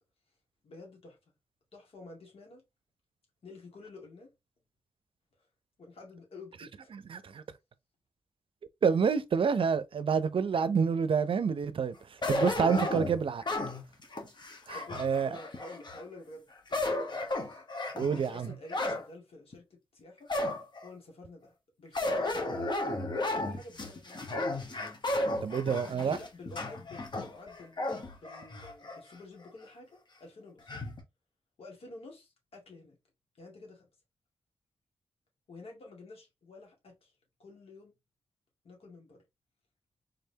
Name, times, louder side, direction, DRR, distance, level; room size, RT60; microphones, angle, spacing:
voice 1, 0.6-1.2 1.7-2.6 3.4-4.3 5.8-6.9 14.5-17.7 18.1-20.3 20.8-23.0 23.3-24.4 25.6-27.9 28.2-30.8 31.6-33.0 33.4-33.9 35.5-37.1 37.4-38.0 38.6-39.2, left 2 dB, 75° left, 2.0 m, -50 dB
voice 2, 6.9-7.4 8.8-12.0 12.3-13.4 14.7-15.3 17.9-18.5 25.4-26.2, right 6 dB, 65° right, 0.5 m, -28 dB
sound 1, 12.2-16.0 16.5-19.0 19.5-19.6 20.3-20.9 21.9-29.0 29.4-29.5 30.7-31.0, left 2 dB, 50° left, 1.3 m, -34 dB
3.9 x 3.3 x 2.8 m
cardioid pair, 45°, 10 cm